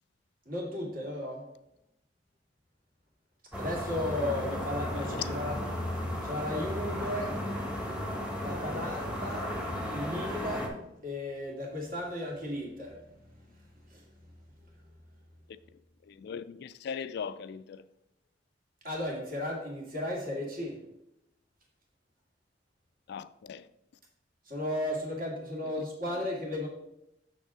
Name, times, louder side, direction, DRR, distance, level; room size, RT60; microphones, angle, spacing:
voice 1, 0.5-1.4 3.6-5.5 6.2-7.4 8.4-9.5 9.9-10.8 11.0-14.1 18.8-20.8 24.5-26.7, left 1 dB, 50° right, 2.2 m, -35 dB
sound 1, 3.5-10.7, equal, 5° right, 1.2 m, -34 dB
voice 2, 4.9-5.3 16.0-17.9 23.1-23.7 26.0-26.3, left 7 dB, 60° left, 0.3 m, -39 dB
6.4 x 6.3 x 3.7 m
head